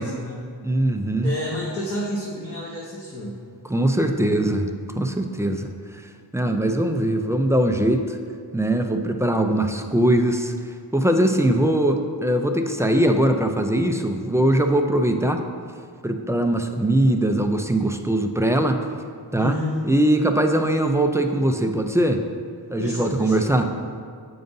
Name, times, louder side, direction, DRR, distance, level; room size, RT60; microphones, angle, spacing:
voice 1, 0.0-0.5 1.2-3.4 19.4-19.8 22.8-23.5, left 1 dB, 30° left, -4 dB, 0.8 m, -30 dB
voice 2, 0.6-1.3 3.6-4.7 5.0-5.7 6.3-8.2 8.5-10.5 10.9-15.4 16.0-18.8 19.3-19.6 19.9-22.2 22.7-23.6, right 1 dB, 5° right, 5 dB, 0.3 m, -21 dB
7.8 x 5.2 x 2.6 m, 2.2 s
wide cardioid pair, 75°, 44 cm